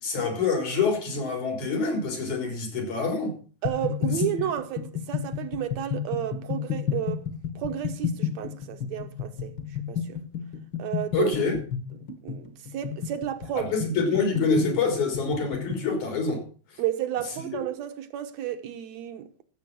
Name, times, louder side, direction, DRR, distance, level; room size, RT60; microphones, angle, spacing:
voice 1, 0.0-3.3 11.1-11.6 13.5-16.4, left 4 dB, 80° left, 5.4 m, -26 dB
sound 1, 3.6-15.9, left 8 dB, 50° left, 1.7 m, -31 dB
voice 2, 3.6-7.2 7.6-9.5 9.9-10.2 10.8-11.3 12.0-13.7 16.8-19.3, right 11 dB, 70° right, 2.1 m, -32 dB
14.5 x 7.4 x 6.1 m
omnidirectional pair, 3.3 m